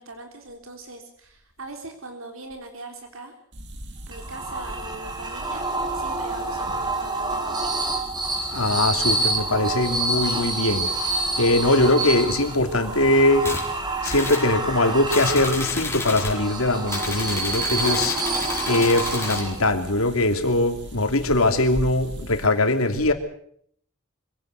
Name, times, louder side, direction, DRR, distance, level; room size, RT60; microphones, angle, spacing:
voice 1, 0.0-3.3 4.1-5.7 5.9-7.7, right 2 dB, 75° right, 3.6 m, -41 dB
sound 1, 3.5-22.5, right 1 dB, 55° right, 2.8 m, -40 dB
sound 2, 4.1-19.8, right 2 dB, 20° right, 3.7 m, -28 dB
voice 2, 8.5-10.9 11.4-13.5 14.0-23.1, left 2 dB, 90° left, 2.9 m, -21 dB
sound 3, 13.4-13.7 14.0-14.5 15.1-16.4 16.9-19.5, left 3 dB, 10° left, 4.9 m, -31 dB
25.0 x 17.0 x 8.0 m
head